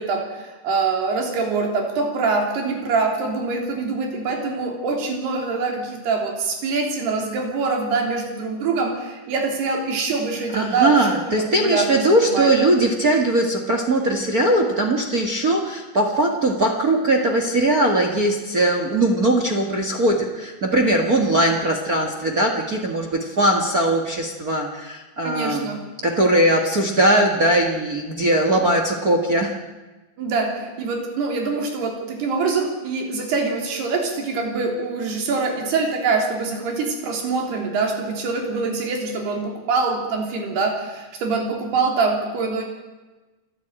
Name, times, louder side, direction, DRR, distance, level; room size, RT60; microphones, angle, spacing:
voice 1, 0.0-12.5 25.2-25.8 30.2-42.6, right 4 dB, 80° right, 1 dB, 5.4 m, -24 dB
voice 2, 10.5-25.7 26.0-29.5, right 1 dB, 45° right, 2 dB, 1.2 m, -20 dB
28.5 x 11.0 x 9.0 m, 1.2 s
omnidirectional pair, 4.6 m